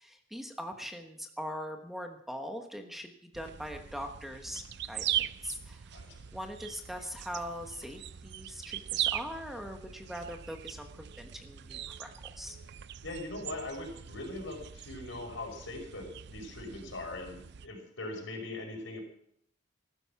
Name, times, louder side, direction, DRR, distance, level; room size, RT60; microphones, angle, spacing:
voice 1, 0.0-6.0 6.3-12.1 12.4-12.6, equal, ahead, 4 dB, 1.2 m, -41 dB
sound 1, 3.3-17.7, right 11 dB, 60° right, 0.5 m, -40 dB
voice 2, 13.0-19.0, left 2 dB, 75° left, 1 dB, 5.7 m, -41 dB
15.0 x 13.0 x 5.9 m, 0.69 s
head